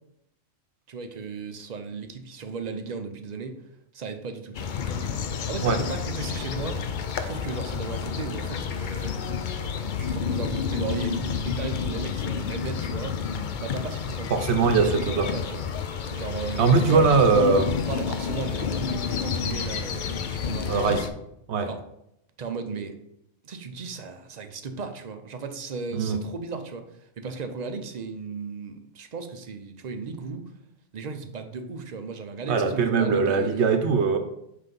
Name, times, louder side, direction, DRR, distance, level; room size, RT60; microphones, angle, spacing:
voice 1, 0.9-3.6 3.9-4.7 5.3-6.8 7.2-9.2 9.6-9.7 10.0-13.2 13.6-15.7 16.1-16.6 16.9-17.1 17.7-21.0 21.6-21.8 22.4-23.0 23.4-30.4 30.9-33.8, right 4 dB, 45° right, 7 dB, 0.6 m, -36 dB
sound 1, 4.5-21.1, left 6 dB, 60° left, 0.5 m, -30 dB
voice 2, 14.3-15.3 16.6-17.7 20.7-21.1 21.5-21.7 25.9-26.2 32.5-34.2, right 4 dB, 65° right, 7 dB, 1.0 m, -21 dB
5.8 x 3.3 x 5.3 m, 0.78 s
omnidirectional pair, 1.3 m